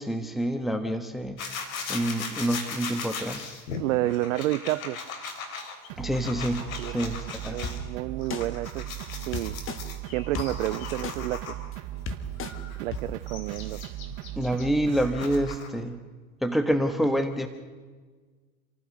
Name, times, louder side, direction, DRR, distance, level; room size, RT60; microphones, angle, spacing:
voice 1, 0.0-1.4 1.9-3.5 6.0-7.6 14.4-16.0 16.4-17.5, equal, ahead, 8 dB, 1.4 m, -27 dB
sound 1, 1.4-7.8 8.2-11.8 12.4-15.8, left 5 dB, 75° left, 3.6 m, -38 dB
voice 2, 3.8-5.0 6.8-7.1 7.5-8.9 9.3-9.6 10.1-11.6 12.8-13.8, right 16 dB, 65° right, 14 dB, 0.6 m, -30 dB
sound 2, 5.9-15.6, right 15 dB, 50° right, 1.0 m, -38 dB
sound 3, 7.6-7.7 8.3-8.4 9.3-9.8 10.3-10.5 11.0-11.1 11.7-11.8 12.1-12.5 12.9-13.0, left 7 dB, 30° left, 1.9 m, -33 dB
27.0 x 15.5 x 6.4 m, 1.4 s
hypercardioid pair, 95°, 42 cm